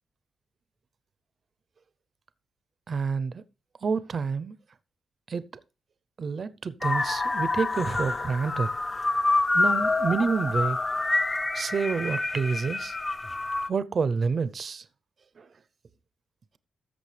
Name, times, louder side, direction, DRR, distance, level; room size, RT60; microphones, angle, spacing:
voice 1, 2.9-3.4 3.8-4.5 5.3-5.5 6.2-8.7 9.5-10.8 11.5-12.9 13.7-14.8 15.4-15.5, right 5 dB, 40° right, 0.5 m, -28 dB
sound 1, 6.8-13.7, left 2 dB, 20° left, 0.5 m, -27 dB
14.0 x 6.3 x 3.3 m
wide cardioid pair, 155°, 0 cm